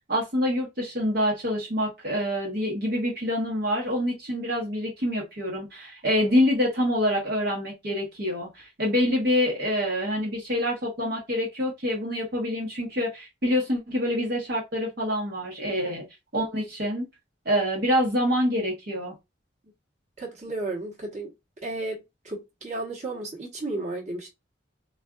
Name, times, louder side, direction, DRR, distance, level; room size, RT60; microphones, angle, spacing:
voice 1, 0.1-16.0 16.3-17.1 17.4-19.1, equal, 55° right, 1.0 m, -26 dB
voice 2, 20.2-21.3 21.6-24.3, right 2 dB, 35° right, 1.1 m, -33 dB
3.6 x 2.5 x 2.3 m
head